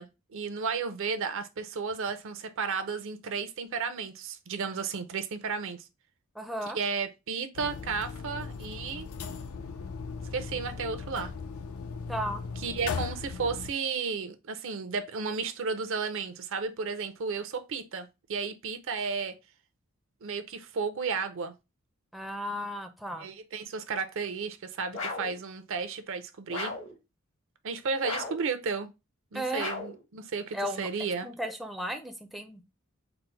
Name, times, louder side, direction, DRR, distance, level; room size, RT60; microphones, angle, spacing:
voice 1, 0.0-5.9 6.7-9.1 10.3-11.3 12.6-19.3 20.2-21.5 23.2-26.7 27.6-28.9 29.3-31.3, right 5 dB, 65° right, 0.5 m, -33 dB
voice 2, 6.4-6.8 12.1-12.4 22.1-23.3 29.3-29.7 30.5-30.9 31.2-32.6, equal, ahead, 0.4 m, -35 dB
sound 1, 7.5-13.7, left 5 dB, 80° left, 0.5 m, -38 dB
sound 2, 24.9-25.4 26.5-27.0 28.0-28.5 29.5-30.0, left 3 dB, 65° left, 1.1 m, -35 dB
4.0 x 2.1 x 4.4 m
head